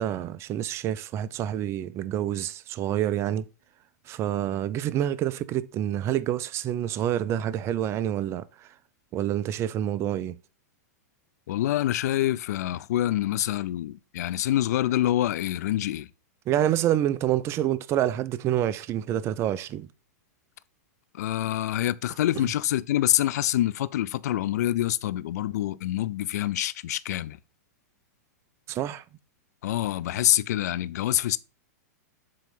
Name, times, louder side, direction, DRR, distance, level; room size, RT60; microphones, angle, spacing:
voice 1, 0.0-3.5 4.1-8.7 9.1-10.4 16.5-19.9 28.7-29.0, right 11 dB, 30° right, 0.4 m, -27 dB
voice 2, 11.5-16.1 21.1-27.4 29.6-31.4, left 13 dB, 70° left, 0.4 m, -26 dB
7.6 x 3.1 x 5.3 m
hypercardioid pair, 125°, 9 cm